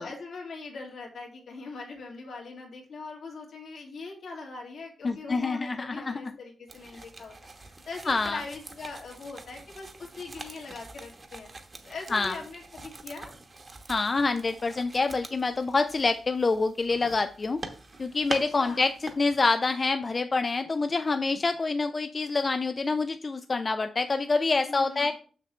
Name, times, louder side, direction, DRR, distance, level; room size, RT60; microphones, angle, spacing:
voice 1, 0.0-11.5 11.8-13.3 18.6-18.8 24.7-25.1, left 3 dB, 70° left, 0 dB, 2.3 m, -41 dB
voice 2, 5.0-6.2 8.1-8.4 12.1-12.4 13.9-17.6 18.0-25.1, left 3 dB, 30° left, 8 dB, 0.4 m, -26 dB
sound 1, 6.7-19.4, right 2 dB, 30° right, 1.0 m, -44 dB
6.6 x 6.6 x 3.2 m, 0.40 s
wide cardioid pair, 115°, 0 cm